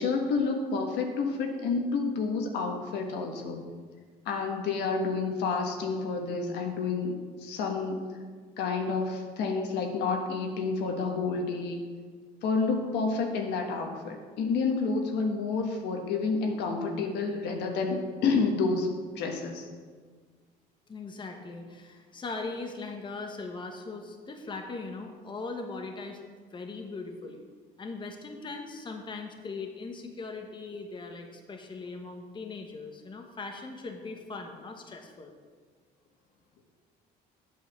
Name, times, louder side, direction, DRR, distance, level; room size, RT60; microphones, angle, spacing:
voice 1, 0.0-3.7 4.2-8.0 8.6-11.8 12.4-18.9 19.1-19.7, left 4 dB, 80° left, 3 dB, 1.4 m, -29 dB
voice 2, 20.9-26.2 26.5-27.4 27.8-35.3, left 3 dB, 30° left, 3 dB, 1.1 m, -40 dB
8.3 x 5.7 x 7.2 m, 1.6 s
cardioid pair, 110°, 17 cm